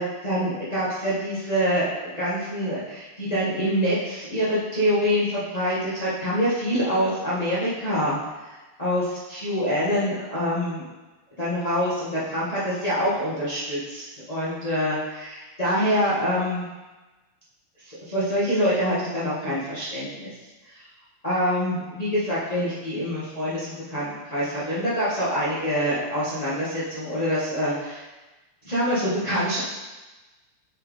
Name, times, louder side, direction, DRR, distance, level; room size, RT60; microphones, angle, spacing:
voice 1, 0.0-10.8 11.4-16.6 17.8-20.3 20.7-20.8 21.2-28.0 28.6-29.6, equal, 60° left, -10 dB, 0.4 m, -25 dB
8.6 x 4.2 x 3.2 m, 1.1 s
omnidirectional pair, 3.3 m